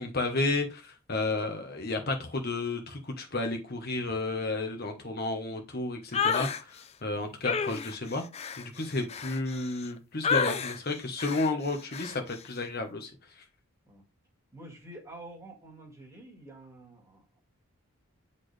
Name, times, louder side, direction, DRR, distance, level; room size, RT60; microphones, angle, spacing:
voice 1, 0.0-8.2 8.6-13.1, left 2 dB, 45° left, 1.1 m, -32 dB
sound 1, 6.1-6.6 7.4-9.9 10.2-10.8 11.2-11.5 11.9-12.2, left 6 dB, 30° left, 0.4 m, -30 dB
voice 2, 14.5-17.4, right 1 dB, 15° right, 1.9 m, -48 dB
8.2 x 4.3 x 3.3 m
head